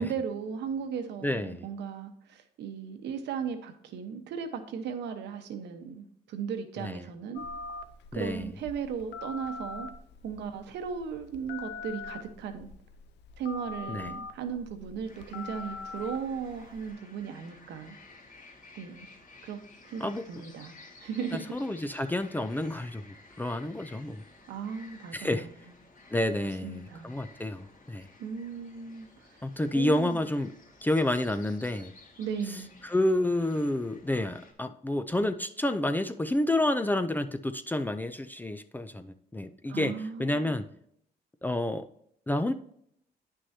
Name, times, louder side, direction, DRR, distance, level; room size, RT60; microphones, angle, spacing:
voice 1, 0.0-7.8 8.1-9.9 10.2-12.7 13.4-18.0 18.7-19.1 19.4-19.6 19.8-21.4 24.5-25.7 26.6-27.1 28.2-29.2 29.7-30.2 32.2-32.7 39.7-40.5, right 6 dB, 85° right, 7 dB, 1.2 m, -36 dB
voice 2, 1.2-1.7 6.8-7.0 8.1-8.5 13.9-14.1 20.0-20.2 21.3-24.2 25.1-25.5 26.1-28.1 29.4-30.5 30.8-31.9 32.8-40.7 41.4-41.9 42.3-42.5, left 1 dB, 10° left, 8 dB, 0.4 m, -29 dB
Telephone, 7.4-16.9, left 4 dB, 85° left, 0.6 m, -43 dB
sound 1, 15.0-34.5, left 2 dB, 50° left, 2.2 m, -54 dB
9.6 x 6.2 x 2.8 m, 0.70 s
cardioid pair, 110°, 17 cm